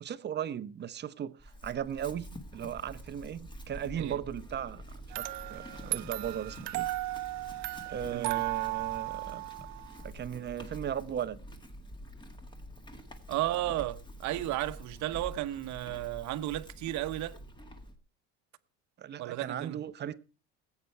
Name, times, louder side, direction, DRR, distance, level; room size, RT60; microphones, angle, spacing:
voice 1, 0.0-4.8 5.1-6.9 7.9-9.4 10.0-11.4 19.0-20.2, right 9 dB, 30° right, 0.8 m, -37 dB
Chewing mastication / Livestock farm animals working animals, 1.4-18.0, equal, 15° left, 1.8 m, -47 dB
sound 1, 5.1-10.1, right 20 dB, 80° right, 0.9 m, -36 dB
voice 2, 13.3-17.4 19.2-19.8, right 15 dB, 60° right, 1.0 m, -34 dB
19.5 x 8.5 x 4.6 m
cardioid pair, 145°, 33 cm